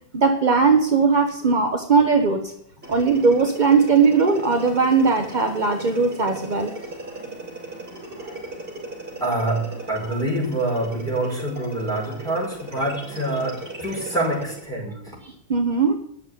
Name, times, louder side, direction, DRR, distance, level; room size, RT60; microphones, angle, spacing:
voice 1, 0.1-2.5 2.9-6.7 15.5-16.0, right 4 dB, 45° right, 4 dB, 0.6 m, -19 dB
sound 1, 2.8-14.7, right 2 dB, 25° right, 4.9 m, -37 dB
voice 2, 9.2-15.2, right 1 dB, ahead, -5 dB, 5.1 m, -26 dB
10.0 x 7.0 x 9.2 m, 0.72 s
omnidirectional pair, 2.2 m